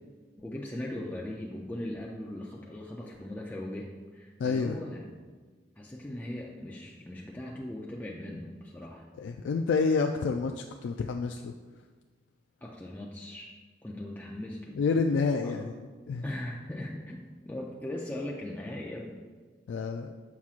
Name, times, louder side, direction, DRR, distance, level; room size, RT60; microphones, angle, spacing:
voice 1, 0.4-5.3 5.8-9.1 12.6-13.5 13.8-14.8 15.4-15.5 16.2-19.2, left 1 dB, 10° left, -3 dB, 0.4 m, -39 dB
voice 2, 4.4-4.8 9.2-11.5 14.8-15.7 16.1-16.2 19.7-20.1, left 4 dB, 90° left, 4 dB, 0.3 m, -28 dB
7.0 x 6.0 x 2.4 m, 1.4 s
head